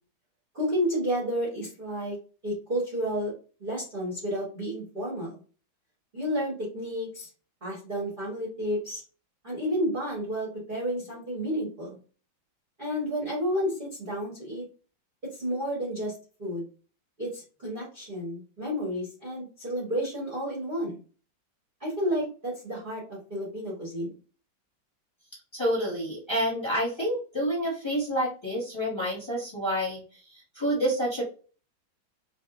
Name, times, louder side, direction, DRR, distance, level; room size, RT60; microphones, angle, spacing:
voice 1, 0.5-2.1 2.4-3.3 3.6-5.3 6.1-7.3 7.6-9.0 9.4-12.0 12.8-14.6 15.2-16.1 16.4-16.6 17.2-21.0 21.8-24.1, equal, 35° right, -5 dB, 1.0 m, -31 dB
voice 2, 25.5-31.2, equal, 15° left, -6 dB, 1.3 m, -28 dB
3.5 x 2.7 x 2.5 m, 0.36 s
omnidirectional pair, 2.2 m